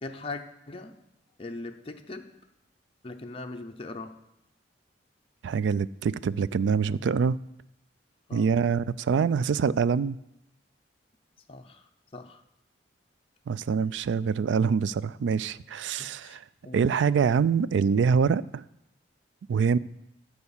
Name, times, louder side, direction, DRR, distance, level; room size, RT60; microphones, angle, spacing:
voice 1, 0.0-1.0 1.4-2.3 3.0-4.2 8.3-8.5 11.5-12.4 16.0-17.3, left 2 dB, 30° left, 4 dB, 0.6 m, -41 dB
voice 2, 5.4-7.4 8.3-10.2 13.5-16.4 16.7-18.6 19.5-19.8, right 6 dB, 75° right, 18 dB, 0.3 m, -25 dB
12.5 x 4.8 x 7.1 m, 0.84 s
head